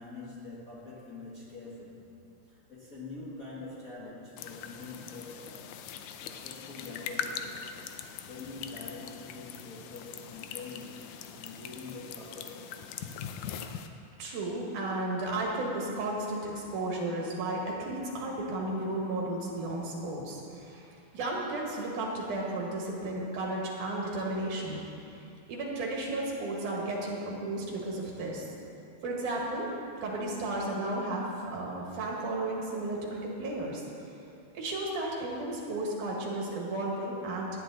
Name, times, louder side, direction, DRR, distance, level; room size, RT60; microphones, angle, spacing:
voice 1, 0.0-2.1 2.4-5.8 6.2-7.7 8.3-11.1 11.4-13.0, left 3 dB, 35° left, -7 dB, 1.5 m, -45 dB
sound 1, 4.4-13.9, left 8 dB, 80° left, 2.0 m, -41 dB
voice 2, 14.2-20.9 21.1-24.8 25.5-28.4 29.0-29.7 30.0-33.8 34.5-37.5, right 2 dB, 85° right, -2 dB, 3.4 m, -33 dB
17.0 x 10.0 x 4.0 m, 2.6 s
omnidirectional pair, 3.5 m